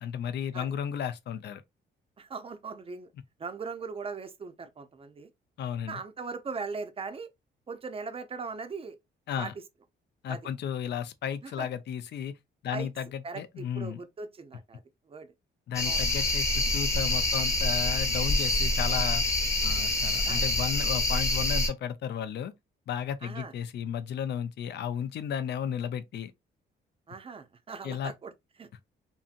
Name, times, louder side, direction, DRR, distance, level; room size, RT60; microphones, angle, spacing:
voice 1, 0.0-1.6 5.6-6.0 9.3-9.5 10.2-12.3 12.6-14.0 15.7-19.2 19.6-22.5 22.9-26.3 27.8-28.1, left 9 dB, 60° left, 0.5 m, -34 dB
voice 2, 2.2-3.1 3.4-5.3 5.8-7.3 7.7-9.0 9.4-9.5 10.3-10.4 11.4-11.7 12.7-12.9 13.2-14.8 15.1-15.3 15.8-16.1 20.3-20.4 23.2-23.5 27.1-28.3 28.6-28.8, right 4 dB, 30° right, 0.6 m, -39 dB
sound 1, 15.7-21.7, left 2 dB, 15° left, 0.9 m, -26 dB
2.7 x 2.6 x 2.4 m
cardioid pair, 90°, 20 cm